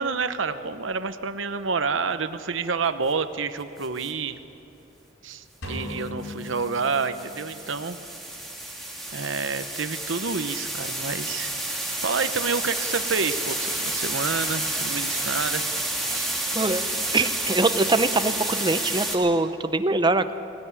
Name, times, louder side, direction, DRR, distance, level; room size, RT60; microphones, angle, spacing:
voice 1, 0.0-4.4 5.2-8.0 9.1-15.6 16.1-16.3, right 5 dB, 85° right, 10 dB, 0.9 m, -29 dB
sound 1, 3.8-4.1 6.2-19.1, right 1 dB, ahead, 3.0 m, -30 dB
sound 2, 5.6-7.7, left 1 dB, 85° left, 5.3 m, -37 dB
voice 2, 16.5-16.9 17.1-20.3, right 2 dB, 25° right, 10 dB, 0.8 m, -23 dB
19.5 x 19.5 x 9.6 m, 2.9 s
head